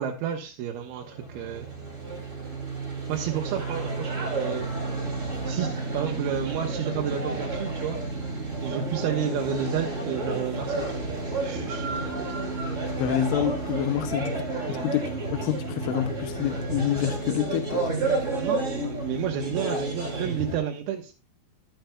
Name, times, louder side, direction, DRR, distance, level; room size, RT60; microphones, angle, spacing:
voice 1, 0.0-1.7 3.1-4.7 5.5-8.0 8.6-11.1 11.4-12.5 14.7-14.9 18.3-21.1, right 8 dB, 90° right, 2.9 m, -31 dB
sound 1, 0.9-20.6, right 3 dB, 25° right, 2.4 m, -31 dB
voice 2, 13.0-14.4 14.7-17.8, left 12 dB, 75° left, 2.1 m, -28 dB
10.5 x 10.0 x 2.2 m
omnidirectional pair, 4.3 m